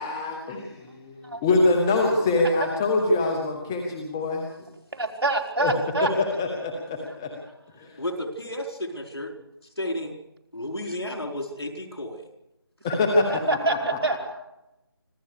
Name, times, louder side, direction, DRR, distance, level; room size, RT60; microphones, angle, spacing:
voice 1, 0.0-4.5 5.6-5.7 6.4-7.3 7.8-8.0 12.8-13.2 14.1-14.2, left 2 dB, 5° left, 1 dB, 0.8 m, -24 dB
voice 2, 4.9-6.1 13.3-14.2, right 3 dB, 70° right, 2 dB, 4.4 m, -26 dB
voice 3, 8.0-9.3 9.8-10.2 10.5-12.2, left 1 dB, 85° left, 4 dB, 4.7 m, -32 dB
25.5 x 15.5 x 6.6 m, 0.93 s
figure-of-eight pair, 170°, 13 cm